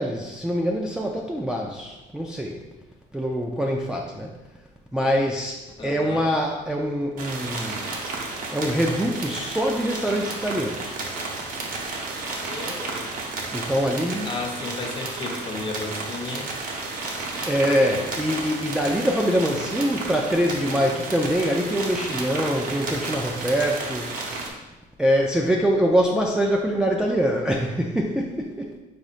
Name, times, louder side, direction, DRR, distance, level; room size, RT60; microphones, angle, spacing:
voice 1, 0.0-2.6 3.1-4.3 4.9-7.9 8.5-11.0 13.5-14.3 17.5-24.1 25.0-28.8, equal, 5° right, -1 dB, 0.3 m, -24 dB
voice 2, 5.8-6.3 12.5-13.1 14.2-16.5, left 3 dB, 30° left, 2 dB, 0.6 m, -33 dB
sound 1, 7.2-24.5, right 3 dB, 55° right, 0.8 m, -32 dB
4.9 x 4.1 x 2.4 m, 1.1 s
cardioid pair, 110°, 17 cm